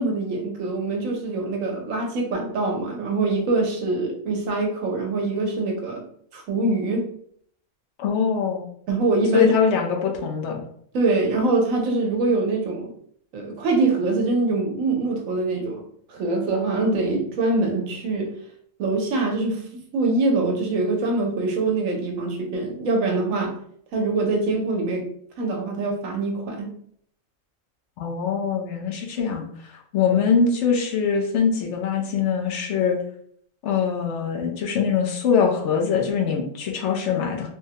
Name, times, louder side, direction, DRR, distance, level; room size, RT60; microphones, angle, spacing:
voice 1, 0.0-6.0 6.3-7.0 8.9-9.5 10.9-12.9 13.3-15.8 16.1-18.3 18.8-19.6 19.9-23.5 23.9-25.1 25.4-26.7, right 3 dB, 80° right, 1 dB, 1.1 m, -24 dB
voice 2, 8.0-8.7 9.3-10.6 28.0-33.0 33.6-37.5, left 6 dB, 70° left, 1 dB, 0.9 m, -23 dB
3.5 x 2.1 x 2.8 m, 0.65 s
omnidirectional pair, 1.4 m